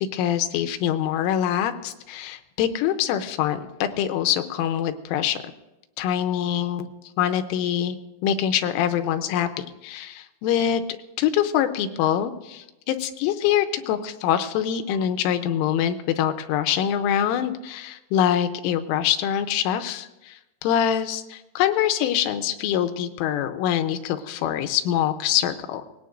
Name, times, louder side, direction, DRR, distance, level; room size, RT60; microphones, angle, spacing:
voice 1, 0.1-5.4 6.0-6.9 7.2-8.0 8.2-10.8 11.2-25.8, left 10 dB, 85° left, 8 dB, 3.3 m, -24 dB
23.5 x 18.5 x 2.6 m, 0.98 s
omnidirectional pair, 5.7 m